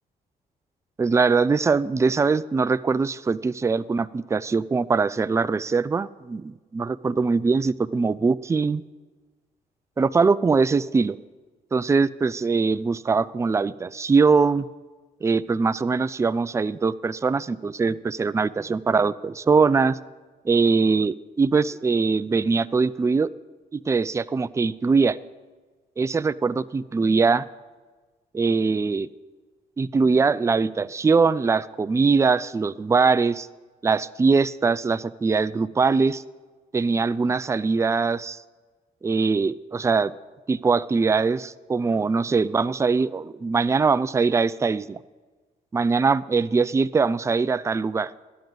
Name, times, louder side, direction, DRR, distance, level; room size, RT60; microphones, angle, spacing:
voice 1, 1.0-8.8 10.0-11.2 11.7-14.7 15.2-20.0 20.4-23.3 23.7-25.2 26.0-27.5 28.3-29.1 29.8-33.5 33.8-36.2 36.7-38.4 39.0-40.1 40.5-45.0 45.7-48.1, right 4 dB, 20° right, 16 dB, 0.3 m, -22 dB
12.5 x 10.5 x 3.9 m, 1.3 s
cardioid pair, 75°, 16 cm